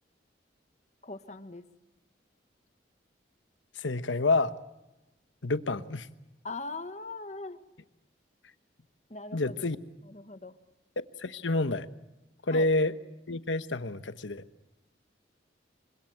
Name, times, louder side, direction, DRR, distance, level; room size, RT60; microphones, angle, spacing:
voice 1, 1.0-1.7 6.4-7.6 9.1-9.6 10.1-10.6 12.5-12.7, left 3 dB, 40° left, 10 dB, 1.4 m, -40 dB
voice 2, 3.8-4.5 5.4-6.1 9.3-9.8 11.2-11.9 12.5-12.9 13.3-14.4, left 2 dB, 85° left, 12 dB, 1.2 m, -28 dB
26.0 x 24.5 x 7.9 m, 0.95 s
head